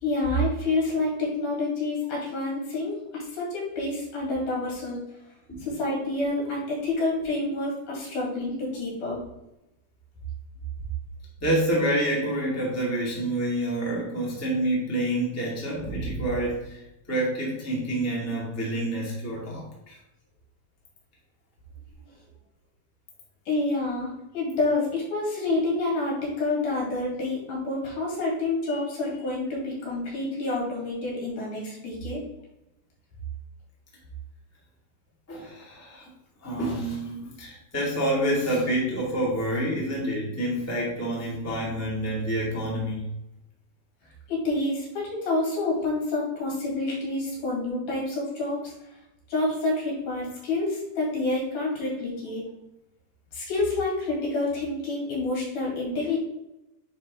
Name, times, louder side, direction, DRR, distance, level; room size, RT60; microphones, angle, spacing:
voice 1, 0.0-5.0 5.6-9.2 23.5-32.2 44.3-48.7 49.3-52.4 53.3-56.2, left 2 dB, 80° left, -4 dB, 4.2 m, -28 dB
voice 2, 11.4-16.8 17.1-20.0 35.3-36.1 36.4-43.1, right 1 dB, 5° left, -4 dB, 1.6 m, -28 dB
9.5 x 4.1 x 3.6 m, 0.89 s
omnidirectional pair, 3.6 m